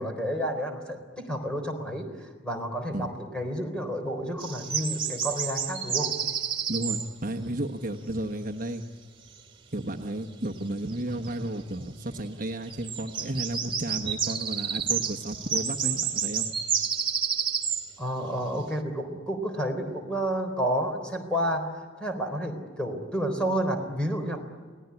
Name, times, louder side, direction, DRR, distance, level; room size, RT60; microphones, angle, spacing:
voice 1, 0.0-6.1 18.0-21.6 22.0-24.4, equal, 5° left, 3 dB, 4.0 m, -30 dB
sound 1, 4.4-7.1 10.9-11.0 11.2-11.3 12.7-17.9, right 7 dB, 25° right, 2.4 m, -30 dB
voice 2, 6.7-8.8 9.7-16.5, right 1 dB, 45° right, 3 dB, 1.3 m, -33 dB
29.0 x 19.0 x 9.8 m, 1.5 s
head